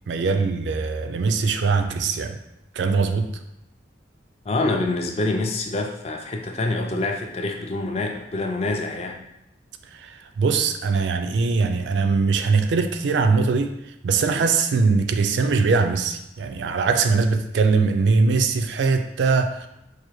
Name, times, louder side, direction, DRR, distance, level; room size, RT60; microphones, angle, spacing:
voice 1, 0.1-2.4 2.8-3.3 10.0-10.1 10.4-13.7 14.0-19.7, right 4 dB, 70° right, 7 dB, 0.3 m, -21 dB
voice 2, 4.5-9.2, left 2 dB, 35° left, 3 dB, 0.3 m, -26 dB
4.7 x 2.4 x 3.0 m, 0.87 s
head